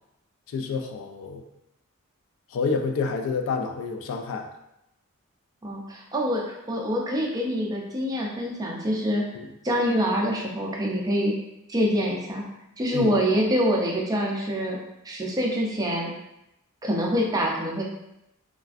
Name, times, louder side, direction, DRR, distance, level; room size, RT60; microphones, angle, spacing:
voice 1, 0.5-1.4 2.5-4.5 9.3-9.5 12.9-13.2, left 4 dB, 60° left, 5 dB, 0.3 m, -28 dB
voice 2, 5.6-9.2 9.6-11.3 11.7-12.4 12.8-14.8 15.0-16.1 16.8-17.8, equal, 15° right, -2 dB, 0.4 m, -25 dB
3.2 x 2.5 x 2.4 m, 0.86 s
head